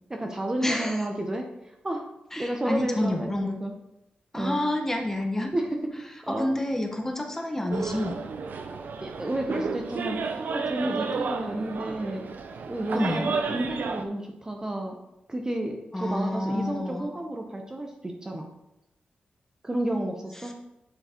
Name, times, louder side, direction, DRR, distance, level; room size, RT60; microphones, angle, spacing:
voice 1, 0.1-2.1 2.4-3.7 4.3-4.6 5.5-5.8 6.2-6.5 9.0-10.2 10.5-12.3 12.7-15.0 15.3-18.5 19.6-20.5, right 1 dB, 20° right, 2 dB, 0.9 m, -31 dB
voice 2, 0.6-1.0 2.3-3.5 4.3-5.5 6.4-8.2 12.9-13.3 15.9-17.1, left 1 dB, 15° left, 3 dB, 1.1 m, -28 dB
sound 1, 7.7-14.0, right 4 dB, 70° right, 0.7 m, -32 dB
9.6 x 4.9 x 4.4 m, 0.86 s
wide cardioid pair, 125°, 3 cm